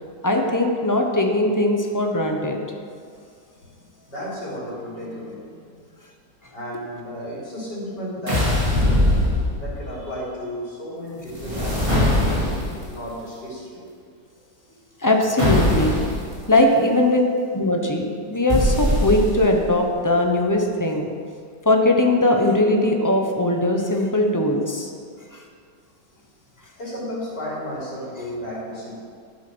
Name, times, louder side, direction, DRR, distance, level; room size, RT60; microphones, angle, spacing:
voice 1, 0.2-2.6 15.0-16.0 16.5-17.2 17.5-21.1 21.6-24.9, left 1 dB, 20° left, 2 dB, 0.5 m, -20 dB
voice 2, 4.1-5.6 6.5-8.6 9.6-12.5 12.8-13.8 26.8-28.9, equal, 70° left, -8 dB, 4.4 m, -33 dB
sound 1, 8.3-9.9 11.3-12.8 15.4-16.2 18.5-19.6, left 1 dB, 15° right, 3.1 m, -21 dB
11.0 x 8.4 x 6.1 m, 2.1 s
omnidirectional pair, 2.0 m